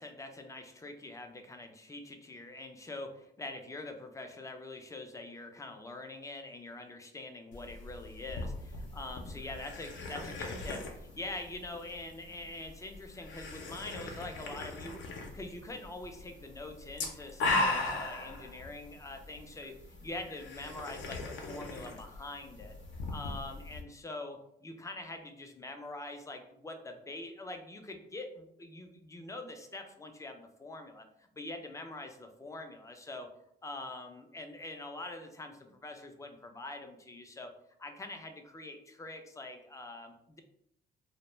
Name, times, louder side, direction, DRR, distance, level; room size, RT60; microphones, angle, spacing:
voice 1, 0.0-15.0 15.3-22.7 23.1-33.3 33.6-37.5 37.8-40.4, left 2 dB, 15° left, 5 dB, 0.3 m, -44 dB
sound 1, 7.5-23.8, left 2 dB, 70° left, 0.6 m, -39 dB
2.1 x 2.0 x 3.1 m, 0.76 s
cardioid pair, 90°, 20 cm